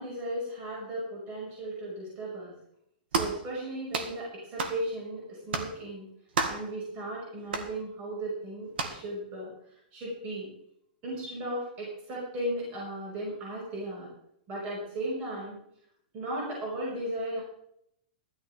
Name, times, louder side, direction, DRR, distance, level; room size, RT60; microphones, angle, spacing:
voice 1, 0.0-2.5 3.2-6.1 6.5-10.5 11.0-14.1 14.5-15.6 16.1-17.4, right 1 dB, 30° right, -4 dB, 5.9 m, -36 dB
sound 1, 3.1-3.4 3.9-4.2 4.6-4.8 5.5-5.7 6.4-6.7 7.5-7.7 8.8-9.0, right 4 dB, 85° right, 2.1 m, -30 dB
16.0 x 12.5 x 3.7 m, 0.72 s
supercardioid pair, 165°, 5 cm